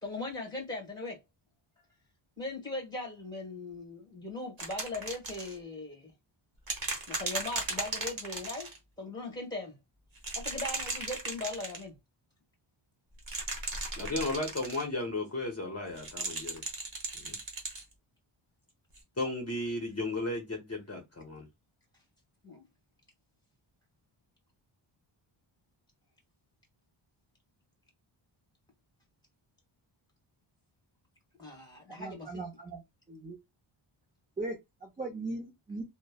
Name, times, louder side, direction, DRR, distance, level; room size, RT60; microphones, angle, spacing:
voice 1, 0.0-1.2 2.4-6.1 7.1-8.7 9.0-9.8 10.3-12.0 22.4-22.6 31.4-32.4, left 2 dB, 10° left, 1.3 m, -39 dB
sound 1, 4.6-5.5 6.7-8.8 10.2-11.8 13.2-14.8 16.0-17.8 19.0-19.1, right 3 dB, 45° right, 1.0 m, -36 dB
voice 2, 14.0-16.6 17.2-17.4 19.2-21.5, left 2 dB, 30° left, 0.8 m, -34 dB
voice 3, 31.9-32.8 33.1-33.4 34.4-35.8, right 2 dB, 20° right, 0.5 m, -39 dB
3.0 x 2.1 x 2.2 m
wide cardioid pair, 120°, 49 cm